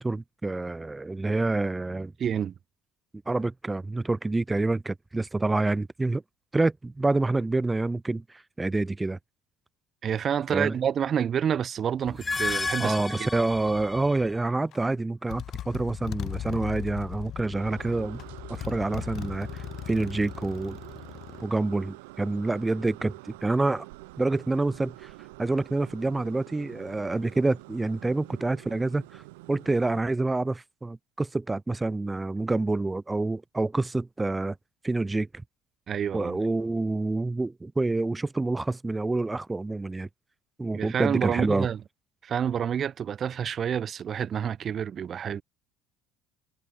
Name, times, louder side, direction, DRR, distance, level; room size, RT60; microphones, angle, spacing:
voice 1, 0.0-2.1 3.3-6.2 6.5-9.2 10.5-10.7 12.8-18.2 18.5-20.8 21.4-23.9 24.2-25.1 25.4-29.2 29.5-34.6 34.8-35.3 36.1-40.1 40.6-41.7, right 2 dB, 15° right, 0.5 m, -27 dB
voice 2, 2.2-2.5 10.0-13.3 35.9-36.4 40.7-41.8 42.2-45.4, right 8 dB, 45° right, 2.5 m, -28 dB
sound 1, 12.1-14.3, left 3 dB, 20° left, 2.6 m, -32 dB
Motorcycle, 14.7-14.9 15.3-21.5, left 11 dB, 55° left, 4.2 m, -38 dB
sound 2, 17.5-30.0, right 23 dB, 85° right, 3.8 m, -47 dB
supercardioid pair, 85°, 0 cm